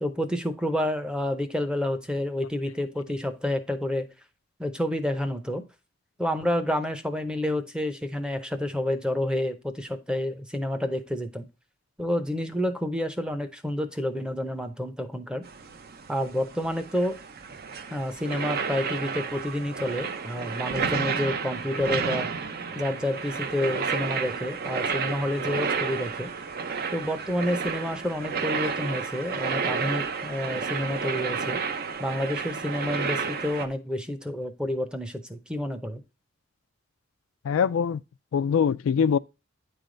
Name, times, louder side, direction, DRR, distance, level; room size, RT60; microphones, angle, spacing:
voice 1, 0.0-4.1 4.6-5.6 6.2-11.5 12.0-15.4 16.1-17.2 17.9-22.3 22.7-26.3 26.9-31.6 32.0-36.0, left 1 dB, 5° right, 0.6 m, -29 dB
sound 1, 15.4-33.7, right 5 dB, 50° right, 0.6 m, -31 dB
voice 2, 37.4-38.0 38.3-39.2, left 7 dB, 85° left, 0.3 m, -23 dB
9.4 x 3.4 x 3.7 m
head